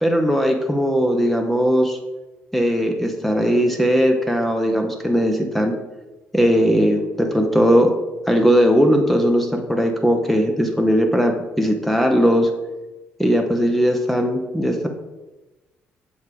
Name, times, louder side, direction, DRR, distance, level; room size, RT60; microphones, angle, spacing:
voice 1, 0.0-2.0 2.5-5.8 6.3-7.9 8.3-12.5 13.2-14.9, equal, 5° left, 3 dB, 0.9 m, -18 dB
7.3 x 3.4 x 4.9 m, 1.1 s
hypercardioid pair, 55°, 6 cm